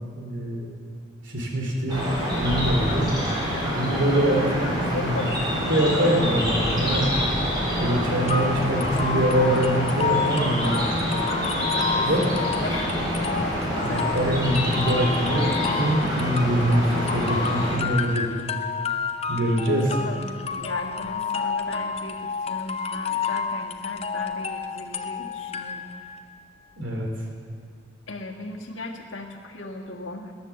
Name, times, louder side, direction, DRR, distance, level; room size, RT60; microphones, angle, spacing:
voice 1, 0.2-0.7 1.2-2.0 2.3-3.1 3.7-5.2 5.7-7.1 7.8-10.8 12.0-12.3 13.8-18.3 19.3-19.9 26.8-27.1, right 1 dB, 75° right, 1 dB, 2.8 m, -24 dB
sound 1, 1.9-17.8, equal, 20° right, 3.8 m, -26 dB
voice 2, 3.8-6.5 11.9-14.4 19.5-26.1 28.1-30.3, left 2 dB, 75° left, 1 dB, 1.7 m, -37 dB
sound 2, 8.3-26.2, left 5 dB, 30° left, 0.5 m, -30 dB
19.0 x 10.5 x 7.1 m, 2.2 s
head